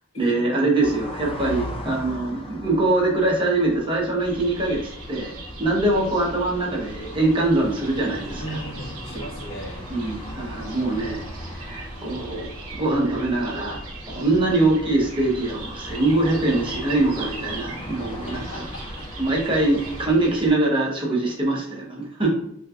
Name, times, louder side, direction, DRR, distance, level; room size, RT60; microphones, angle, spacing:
voice 1, 0.2-8.6 9.1-9.2 9.9-11.2 11.5-13.8 14.1-18.6 19.2-22.4, right 2 dB, 25° right, -3 dB, 0.8 m, -23 dB
sound 1, 0.8-20.0, equal, 25° left, 0.5 m, -39 dB
sound 2, 4.2-20.5, right 2 dB, 85° right, 0.7 m, -39 dB
voice 2, 8.4-9.8 18.3-18.6, equal, 65° left, -4 dB, 1.4 m, -36 dB
3.3 x 3.0 x 2.3 m, 0.73 s
head